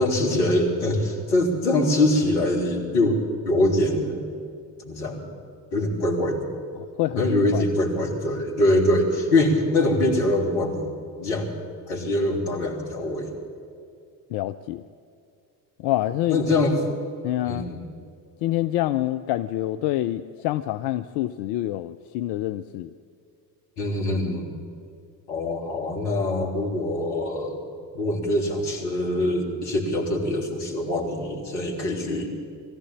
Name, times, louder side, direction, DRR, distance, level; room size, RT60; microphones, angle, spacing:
voice 1, 0.0-3.2 3.4-4.2 4.8-5.3 5.7-6.4 7.2-11.5 11.9-13.3 16.3-16.7 17.4-17.8 23.8-24.5 25.3-27.6 28.0-32.3, left 1 dB, 70° left, 0 dB, 3.6 m, -23 dB
voice 2, 14.3-14.8 15.8-16.4 17.2-17.7 18.4-22.9, left 14 dB, 55° left, 12 dB, 0.7 m, -26 dB
22.0 x 14.5 x 8.8 m, 2.4 s
figure-of-eight pair, 55°, 50 cm